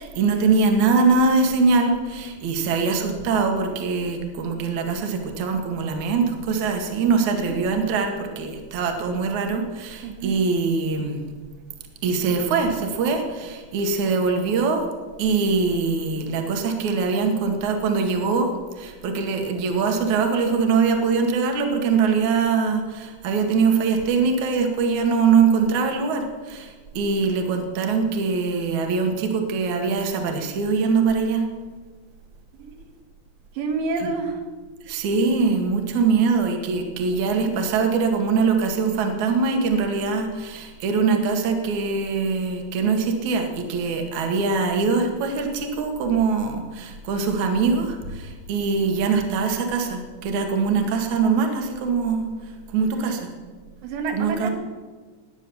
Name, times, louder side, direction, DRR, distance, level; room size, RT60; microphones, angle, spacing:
voice 1, 0.0-11.2 12.0-14.8 15.2-18.5 18.8-31.4 34.9-52.3 52.7-53.3 54.1-54.5, right 4 dB, 50° right, 4 dB, 2.8 m, -22 dB
voice 2, 10.0-10.4 32.6-32.9 33.5-34.4 37.4-37.6 53.8-54.5, right 4 dB, 90° right, 5 dB, 4.0 m, -29 dB
20.0 x 9.9 x 7.1 m, 1.4 s
omnidirectional pair, 4.9 m